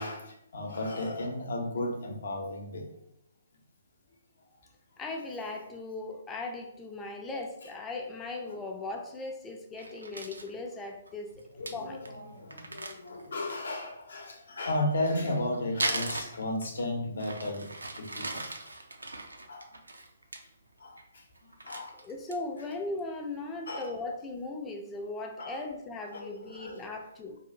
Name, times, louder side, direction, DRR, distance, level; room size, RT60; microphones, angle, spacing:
voice 1, 0.0-2.9 11.6-17.7 17.9-18.6 19.5-19.7 20.8-22.0 23.7-23.9 25.4-25.6 26.1-26.9, left 1 dB, 65° left, 1 dB, 0.7 m, -34 dB
voice 2, 5.0-12.0 22.0-27.4, left 2 dB, 15° left, 2 dB, 0.4 m, -38 dB
Crumpling crinkling, 9.8-10.5 11.1-11.2 11.4-11.5 11.7-11.8 12.0-12.2 12.5-13.7 14.9-16.8 17.2-20.4 20.8-21.1 21.3-22.6 23.0-23.1 23.5-23.9, right 2 dB, 85° right, 0.4 m, -38 dB
2.7 x 2.4 x 2.7 m, 0.78 s
figure-of-eight pair, 130°, 0 cm